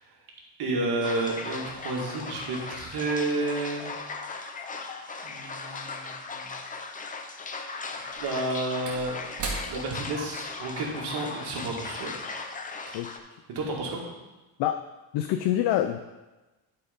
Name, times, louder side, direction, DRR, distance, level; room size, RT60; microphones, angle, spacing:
voice 1, 0.6-3.9 5.2-6.5 8.2-9.2 9.7-12.1 12.9-13.0 13.5-14.0, right 2 dB, 65° right, -2 dB, 2.3 m, -31 dB
sound 1, 1.0-13.2, left 4 dB, 20° left, 0.5 m, -38 dB
Slam / Wood, 6.4-6.5 7.9-12.6 13.0-13.1, right 3 dB, 45° right, 2.0 m, -40 dB
voice 2, 15.1-16.0, left 12 dB, 70° left, 7 dB, 0.6 m, -25 dB
11.0 x 4.6 x 5.2 m, 1.1 s
cardioid pair, 170°, 42 cm